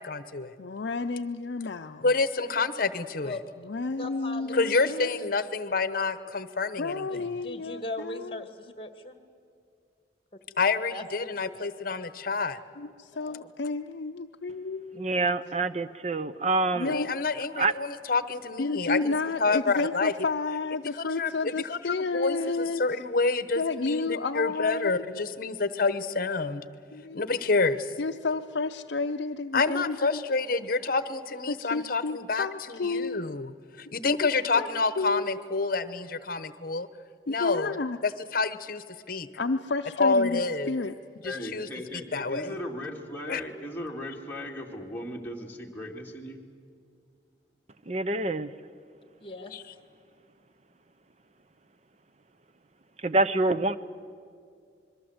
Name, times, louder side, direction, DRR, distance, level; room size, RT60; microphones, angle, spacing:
voice 1, 0.0-0.5 2.0-3.3 4.5-7.3 10.6-12.6 16.8-19.1 19.4-20.1 21.2-26.7 27.1-27.9 29.5-33.5 33.8-36.9 37.3-37.7 38.0-39.3 40.0-40.7 41.2-41.7 42.1-42.5 43.3-43.4 49.5-49.6, left 3 dB, 50° left, 1.0 m, -28 dB
voice 2, 0.6-2.1 3.6-5.1 6.8-8.4 12.8-15.2 16.8-17.1 18.6-22.8 23.6-25.2 26.9-27.3 28.0-30.3 31.5-33.4 33.9-34.3 34.6-34.7 35.0-35.4 37.3-38.0 39.4-40.4 40.7-40.9, left 3 dB, 70° left, 0.6 m, -31 dB
voice 3, 4.0-5.1 7.1-9.2 10.9-11.0 11.4-11.5 13.1-13.5 49.2-49.5, left 2 dB, 30° left, 1.8 m, -39 dB
voice 4, 14.9-17.0 17.6-17.7 47.9-48.5 53.0-53.8, right 2 dB, 35° right, 0.7 m, -26 dB
voice 5, 41.2-46.4, left 1 dB, 10° left, 2.3 m, -37 dB
26.0 x 22.5 x 8.0 m
head